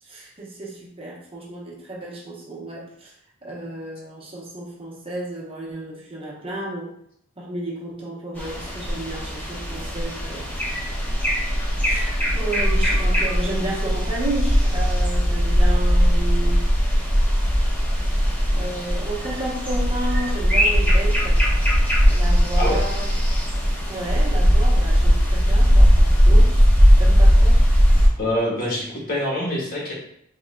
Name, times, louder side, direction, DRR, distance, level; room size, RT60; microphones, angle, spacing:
voice 1, 0.0-3.1 3.4-7.0 7.4-10.9 11.8-16.6 18.5-21.5 22.0-23.1 23.9-26.6 27.0-27.6, right 2 dB, 30° right, -4 dB, 0.8 m, -32 dB
sound 1, 8.4-28.1, equal, 10° left, 1.0 m, -18 dB
voice 2, 28.2-29.9, left 1 dB, 50° left, -4 dB, 1.3 m, -25 dB
3.7 x 3.7 x 2.2 m, 0.71 s
head